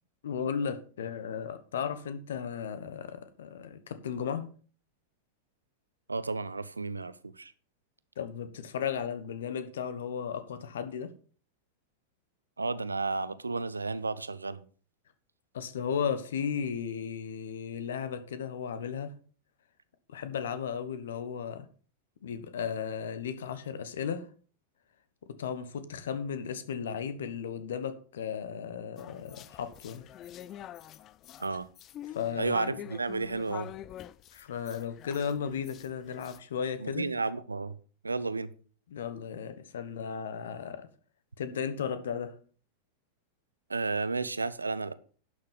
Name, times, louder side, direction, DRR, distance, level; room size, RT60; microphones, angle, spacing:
voice 1, 0.2-4.5 8.2-11.1 15.5-19.1 20.1-21.7 22.2-24.3 25.4-30.0 32.1-32.8 34.3-37.1 38.9-40.9 41.4-42.3, left 7 dB, 60° left, 1.3 m, -35 dB
voice 2, 6.1-7.5 12.6-14.6 31.4-31.7 32.4-33.7 36.8-37.7 38.0-38.5 43.7-44.9, right 3 dB, 80° right, 0.6 m, -32 dB
sound 1, 29.0-36.4, left 12 dB, 35° left, 0.4 m, -46 dB
11.5 x 6.7 x 5.2 m
figure-of-eight pair, 90°, 0 cm